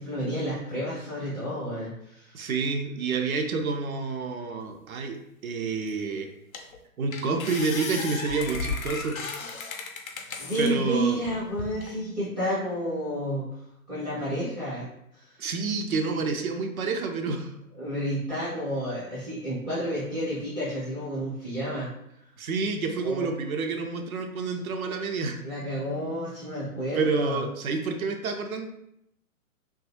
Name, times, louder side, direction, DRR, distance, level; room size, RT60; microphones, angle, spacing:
voice 1, 0.0-2.4 10.2-13.4 13.9-14.8 15.1-15.4 17.8-21.9 23.0-23.3 24.4-24.6 25.4-27.4, equal, 5° left, -14 dB, 0.3 m, -31 dB
voice 2, 2.3-5.2 5.4-6.3 7.0-9.2 10.6-11.2 15.4-17.5 22.4-25.4 26.9-28.7, right 4 dB, 75° right, 4 dB, 0.6 m, -28 dB
sound 1, 5.9-6.0 6.5-6.8 7.1-10.7 11.2-11.9, left 4 dB, 70° left, 0.6 m, -35 dB
2.8 x 2.3 x 2.7 m, 0.77 s
figure-of-eight pair, 115°, 43 cm